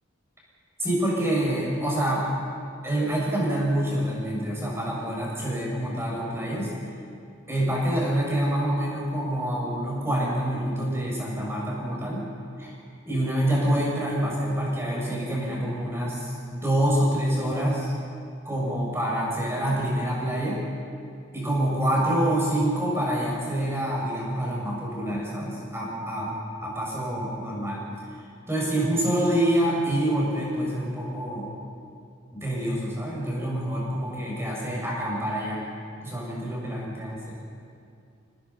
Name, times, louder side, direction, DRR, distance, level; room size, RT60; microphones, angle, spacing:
voice 1, 0.8-2.2 2.8-6.7 7.5-12.3 12.6-12.7 13.1-17.9 18.4-20.6 21.3-26.3 26.6-27.8 28.5-31.5 32.3-35.6 36.0-37.4, right 1 dB, 10° right, -4 dB, 6.6 m, -26 dB
26.5 x 18.5 x 5.7 m, 2.4 s
head